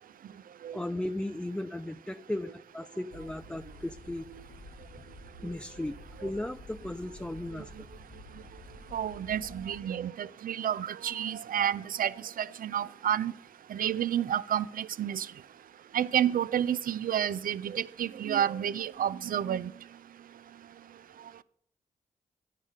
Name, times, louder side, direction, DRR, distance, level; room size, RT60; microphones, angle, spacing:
voice 1, 0.7-4.2 5.4-7.7, left 1 dB, 5° left, 0.4 m, -36 dB
sound 1, 3.1-9.8, left 1 dB, 85° left, 0.9 m, -50 dB
voice 2, 8.9-13.3 13.7-15.3 15.9-19.7, right 10 dB, 60° right, 0.4 m, -30 dB
10.5 x 5.7 x 5.0 m
supercardioid pair, 40°, 16 cm